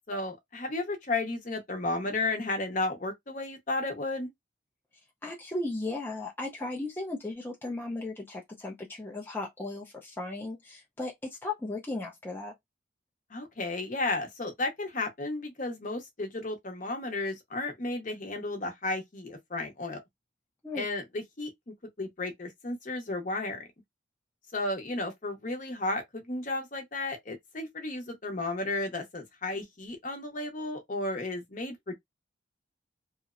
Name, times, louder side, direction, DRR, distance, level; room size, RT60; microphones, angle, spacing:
voice 1, 0.1-4.3 13.3-20.0 20.7-21.5 22.0-23.6 24.5-31.9, left 2 dB, 40° left, 0.7 m, -33 dB
voice 2, 5.2-12.5 20.6-20.9, left 2 dB, 10° left, 0.4 m, -36 dB
2.8 x 2.0 x 2.4 m
head